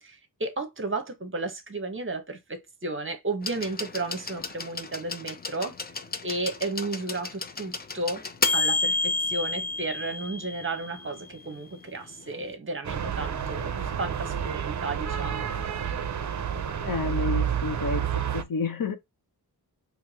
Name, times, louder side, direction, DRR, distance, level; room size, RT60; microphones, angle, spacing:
voice 1, 0.0-5.8 6.2-8.2 8.5-15.5, right 2 dB, 30° right, 0.9 m, -33 dB
sound 1, 3.4-11.2 12.3-12.4, left 3 dB, 25° left, 0.4 m, -30 dB
sound 2, 12.8-18.4, right 8 dB, 50° right, 0.5 m, -30 dB
voice 2, 16.9-18.0 18.3-19.0, left 5 dB, 60° left, 0.7 m, -29 dB
4.4 x 2.1 x 2.7 m
wide cardioid pair, 135°, 39 cm